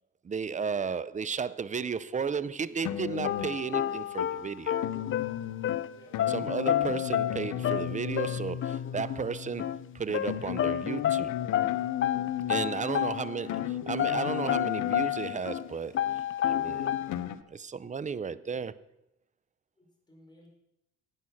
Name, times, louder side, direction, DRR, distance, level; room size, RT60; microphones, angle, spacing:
voice 1, 0.2-4.8 6.3-11.3 12.5-17.0 17.5-18.8, right 6 dB, 25° right, 0.5 m, -34 dB
sound 1, 2.8-4.1 4.8-15.9 16.7-17.4, left 11 dB, 80° left, 0.8 m, -36 dB
sound 2, 3.2-13.7 14.0-15.7 15.9-17.4, left 11 dB, 45° left, 0.5 m, -31 dB
voice 2, 5.9-6.3 18.2-18.6 19.8-20.5, left 1 dB, 15° left, 4.6 m, -58 dB
12.0 x 9.2 x 5.8 m
cardioid pair, 90°, 30 cm